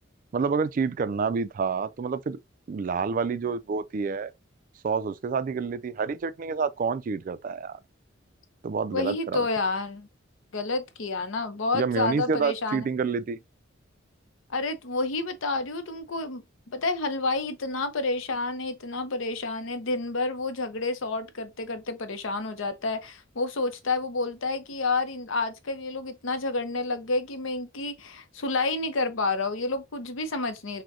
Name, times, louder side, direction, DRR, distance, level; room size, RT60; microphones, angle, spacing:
voice 1, 0.3-2.4 2.7-4.3 4.8-7.8 8.6-9.5 11.7-13.4, right 5 dB, 40° right, 0.3 m, -28 dB
voice 2, 8.9-10.1 10.5-12.9 14.5-30.8, left 3 dB, 75° left, 0.7 m, -29 dB
6.1 x 2.1 x 2.6 m
head